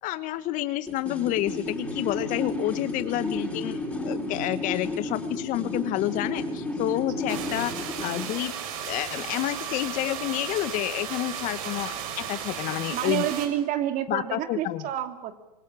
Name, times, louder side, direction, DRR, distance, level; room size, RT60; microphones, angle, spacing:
voice 1, 0.0-7.7 8.0-8.5 8.9-13.3 14.1-14.9, left 15 dB, 40° left, 12 dB, 1.2 m, -29 dB
sound 1, 0.9-8.4, left 1 dB, 5° left, 5.3 m, -32 dB
sound 2, 7.3-13.5, right 8 dB, 60° right, 5.9 m, -35 dB
voice 2, 12.9-15.3, right 11 dB, 40° right, 7 dB, 2.9 m, -29 dB
26.0 x 21.0 x 8.9 m, 0.96 s
hypercardioid pair, 110°, 20 cm